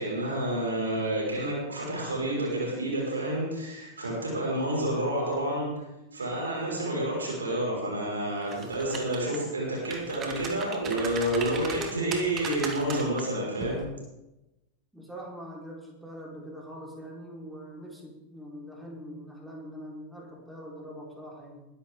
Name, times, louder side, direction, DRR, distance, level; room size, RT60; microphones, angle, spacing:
voice 1, 0.0-5.8 6.1-13.8, right 1 dB, 75° right, -3 dB, 5.6 m, -29 dB
sound 1, 8.4-9.4 9.8-13.2 13.6-13.8, right 5 dB, 30° right, 2.2 m, -37 dB
voice 2, 14.9-21.6, equal, 5° right, -3 dB, 4.5 m, -43 dB
21.5 x 11.0 x 3.9 m, 0.99 s
figure-of-eight pair, 90°, 0 cm